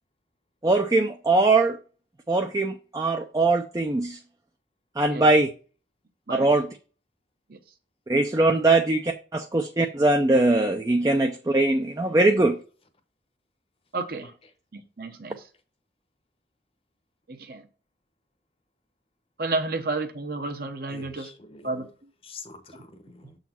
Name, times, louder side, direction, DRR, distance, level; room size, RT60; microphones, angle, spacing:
voice 1, 0.6-1.8 2.3-4.2 5.0-5.5 6.4-6.7 8.1-12.6, right 2 dB, 20° right, 0.4 m, -21 dB
voice 2, 13.9-14.3 14.7-15.4 17.3-17.6 19.4-21.3 21.6-21.8, right 3 dB, 55° right, 0.8 m, -31 dB
voice 3, 20.9-21.9 22.2-23.4, left 3 dB, 30° left, 0.8 m, -45 dB
7.3 x 4.0 x 4.2 m
head